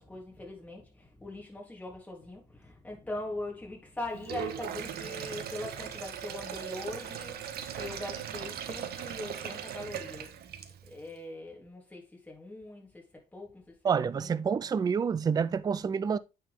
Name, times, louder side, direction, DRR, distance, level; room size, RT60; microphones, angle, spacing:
voice 1, 0.0-10.3 10.9-14.3, left 2 dB, 10° left, 3.4 m, -41 dB
Sink (filling or washing), 4.1-11.0, right 9 dB, 70° right, 1.2 m, -39 dB
voice 2, 13.8-16.2, right 6 dB, 25° right, 0.4 m, -28 dB
8.9 x 4.7 x 3.6 m
cardioid pair, 110°, 17 cm